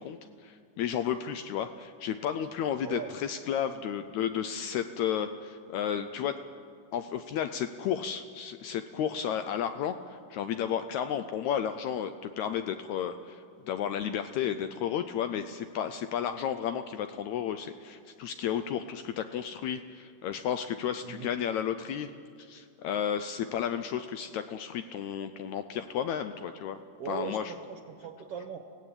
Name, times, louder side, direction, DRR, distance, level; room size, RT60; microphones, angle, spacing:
voice 1, 0.0-6.4 6.9-22.1 22.4-26.8 27.1-27.5, left 9 dB, 80° left, 9 dB, 1.7 m, -33 dB
voice 2, 2.8-3.1 21.0-21.3 27.0-28.6, right 7 dB, 60° right, 6 dB, 1.7 m, -39 dB
22.5 x 16.5 x 8.8 m, 2.4 s
omnidirectional pair, 3.8 m